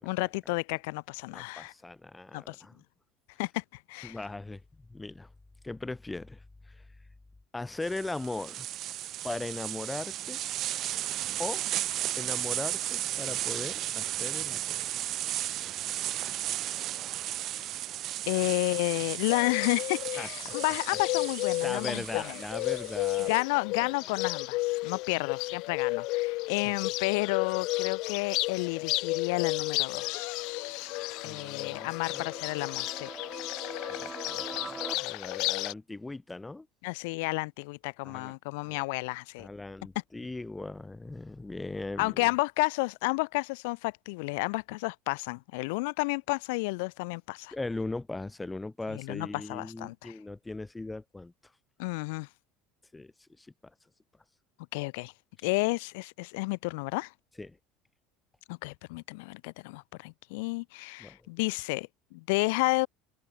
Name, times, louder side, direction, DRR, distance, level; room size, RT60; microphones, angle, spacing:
voice 1, 0.0-1.7 2.3-2.6 3.4-4.2 18.3-22.2 23.3-33.1 36.8-39.5 42.0-47.5 48.9-50.1 51.8-52.3 54.7-55.1 55.4-57.1 58.5-62.9, left 27 dB, 85° left, 6.7 m, -31 dB
voice 2, 1.3-2.8 4.0-5.3 5.6-6.8 7.5-8.7 9.2-10.4 11.4-11.6 12.2-14.8 17.5-17.6 18.4-18.5 20.2-20.5 21.6-23.3 23.7-23.9 31.2-32.2 33.9-36.7 38.0-38.3 38.6-38.8 39.4-42.3 47.5-51.3 52.9-53.7 57.4-57.6 61.0-61.3, left 2 dB, 10° left, 3.6 m, -39 dB
sound 1, 7.8-23.4, right 13 dB, 45° right, 1.6 m, -35 dB
Bird, 19.3-35.7, left 22 dB, 60° left, 1.5 m, -33 dB
sound 2, 29.4-35.0, right 4 dB, 15° right, 3.1 m, -45 dB
cardioid pair, 145°, 0 cm